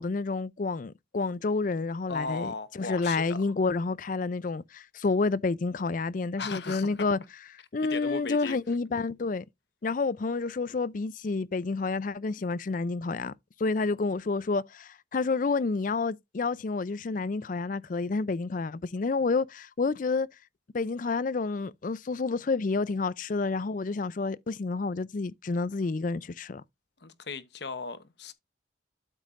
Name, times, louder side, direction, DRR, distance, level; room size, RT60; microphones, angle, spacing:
voice 1, 0.0-7.2 7.7-9.4 9.8-13.3 13.6-20.3 20.7-26.6, left 3 dB, 40° left, 0.4 m, -29 dB
voice 2, 2.1-3.4 6.4-7.1 7.8-8.6 27.0-28.3, left 4 dB, 60° left, 1.0 m, -37 dB
12.5 x 5.4 x 2.5 m
head